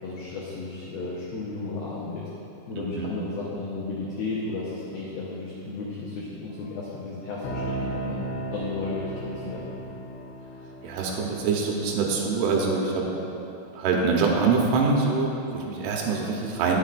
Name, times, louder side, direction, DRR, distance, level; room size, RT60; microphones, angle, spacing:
voice 1, 0.0-2.3 2.7-9.7, left 3 dB, 90° left, -6 dB, 2.1 m, -34 dB
voice 2, 2.8-3.1 10.8-13.1 13.7-16.8, right 4 dB, 75° right, -1 dB, 3.3 m, -24 dB
sound 1, 7.4-13.0, right 2 dB, 75° left, 3.3 m, -36 dB
19.0 x 7.1 x 2.5 m, 3.0 s
omnidirectional pair, 5.8 m